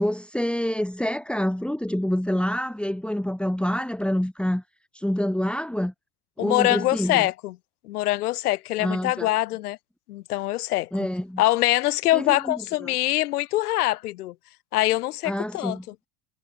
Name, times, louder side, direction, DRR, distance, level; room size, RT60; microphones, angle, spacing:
voice 1, 0.0-4.6 4.9-5.9 6.4-7.3 8.8-9.3 10.9-11.4 12.1-12.6 12.8-12.9 15.2-15.8, equal, ahead, 3.6 m, -27 dB
voice 2, 6.4-7.5 7.8-9.8 10.1-10.9 11.4-14.3 14.7-15.8, left 16 dB, 85° left, 3.3 m, -24 dB
supercardioid pair, 95°, 44 cm